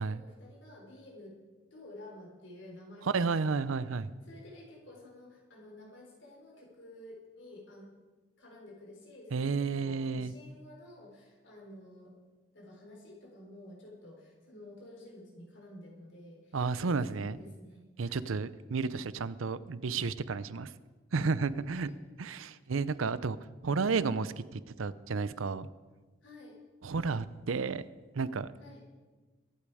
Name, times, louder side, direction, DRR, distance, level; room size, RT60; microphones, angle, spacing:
voice 1, 0.0-1.4 1.7-3.8 4.2-7.9 8.4-12.1 12.5-18.4 21.5-22.0 26.2-26.6 28.6-28.8, left 1 dB, 65° left, -1 dB, 4.3 m, -51 dB
voice 2, 3.1-4.1 9.3-10.3 16.5-17.4 18.0-20.7 21.1-21.9 22.2-23.4 23.6-25.7 26.8-27.8 28.1-28.5, right 4 dB, 90° right, 16 dB, 0.6 m, -32 dB
23.5 x 8.5 x 4.9 m, 1.3 s
head